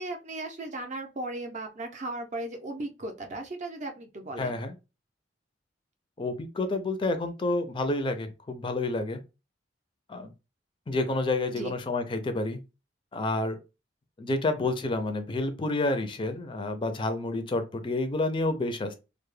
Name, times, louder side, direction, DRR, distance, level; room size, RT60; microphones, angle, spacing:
voice 1, 0.0-4.6 11.5-11.7, right 2 dB, 40° right, 0.5 m, -36 dB
voice 2, 4.4-4.7 6.2-9.2 10.1-10.3 10.9-12.6 13.1-13.6 14.2-18.9, left 2 dB, 25° left, 0.4 m, -29 dB
2.2 x 2.0 x 3.1 m
head